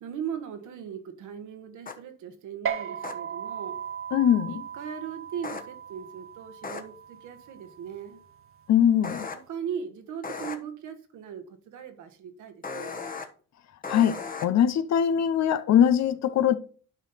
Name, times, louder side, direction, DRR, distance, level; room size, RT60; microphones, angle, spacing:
voice 1, 0.0-3.8 4.4-8.2 9.2-13.0, right 8 dB, 80° right, 1.4 m, -39 dB
sound 1, 1.9-2.0 3.0-3.1 5.4-5.6 6.6-6.8 9.0-9.3 10.2-10.6 12.6-13.3 13.8-14.5, left 4 dB, 30° left, 1.2 m, -35 dB
sound 2, 2.7-9.4, right 8 dB, 45° right, 1.1 m, -38 dB
voice 2, 4.1-4.5 8.7-9.3 13.9-16.6, left 9 dB, 60° left, 0.8 m, -22 dB
9.6 x 5.2 x 4.2 m
cardioid pair, 90°, 30 cm